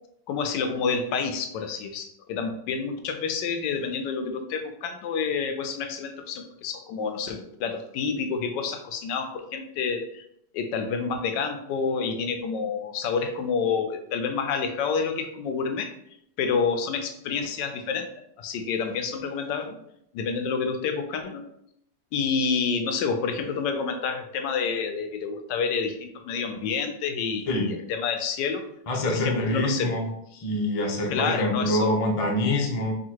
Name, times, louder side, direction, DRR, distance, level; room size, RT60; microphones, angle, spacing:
voice 1, 0.3-10.2 10.5-15.9 16.4-18.1 18.4-19.8 20.1-21.4 22.1-28.6 29.0-30.0 31.1-31.9, left 5 dB, 85° left, 6 dB, 1.3 m, -28 dB
voice 2, 28.9-30.1 30.3-32.9, left 1 dB, 60° left, 0 dB, 0.3 m, -25 dB
3.6 x 2.4 x 4.5 m, 0.75 s
omnidirectional pair, 1.9 m